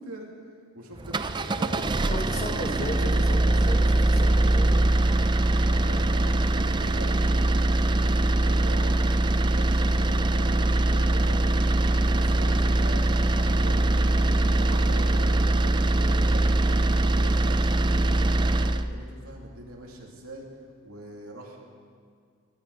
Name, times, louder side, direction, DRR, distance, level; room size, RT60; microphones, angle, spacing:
voice 1, 0.7-3.3 5.6-8.1 8.5-8.9 9.2-11.4 11.8-14.2 14.6-20.5 20.8-21.6, right 1 dB, 80° right, -1 dB, 2.9 m, -42 dB
sound 1, 1.0-18.9, right 1 dB, 20° right, 0.4 m, -22 dB
voice 2, 2.1-4.8 8.0-8.3 14.3-14.7, left 1 dB, 30° left, 1 dB, 2.1 m, -36 dB
23.0 x 11.5 x 4.9 m, 2.1 s
head